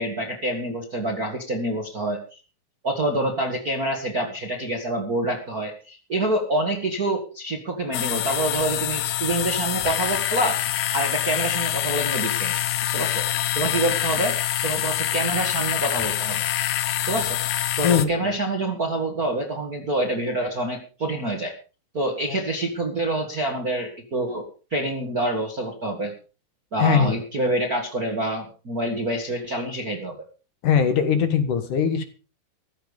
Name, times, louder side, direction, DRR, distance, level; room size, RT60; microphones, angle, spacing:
voice 1, 0.0-2.4 2.8-10.6 10.9-12.5 12.8-13.3 13.5-16.4 17.0-17.4 17.8-21.5 21.9-26.1 26.7-30.1, right 1 dB, 90° right, 3 dB, 0.8 m, -27 dB
sound 1, 7.9-18.1, left 13 dB, 75° left, 2.2 m, -25 dB
voice 2, 17.8-18.3 26.8-27.2 30.6-32.0, left 7 dB, 60° left, 9 dB, 2.5 m, -20 dB
15.0 x 12.5 x 5.3 m, 0.36 s
omnidirectional pair, 5.5 m